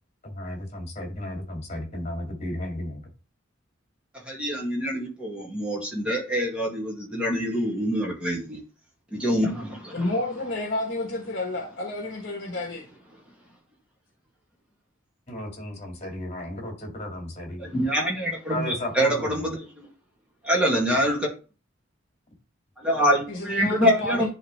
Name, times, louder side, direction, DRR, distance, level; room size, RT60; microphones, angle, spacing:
voice 1, 0.2-3.0 15.3-17.8 18.5-19.5, left 1 dB, 35° left, 2.2 m, -34 dB
voice 2, 4.3-8.6 9.1-9.9 17.6-19.9 20.4-21.3 22.8-24.3, equal, 5° right, 2.2 m, -25 dB
voice 3, 9.9-12.8 23.3-24.3, left 2 dB, 50° left, 1.3 m, -30 dB
10.0 x 3.5 x 3.4 m
head